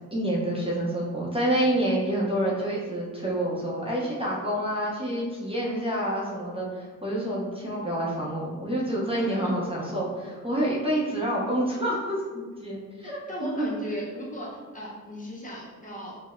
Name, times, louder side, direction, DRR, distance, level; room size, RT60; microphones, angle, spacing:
voice 1, 0.1-13.2 13.6-13.7, right 1 dB, 20° right, -5 dB, 0.6 m, -28 dB
voice 2, 9.1-9.5 13.0-16.2, equal, 25° left, -5 dB, 0.7 m, -36 dB
4.5 x 2.1 x 2.5 m, 1.4 s
cardioid pair, 95°, 31 cm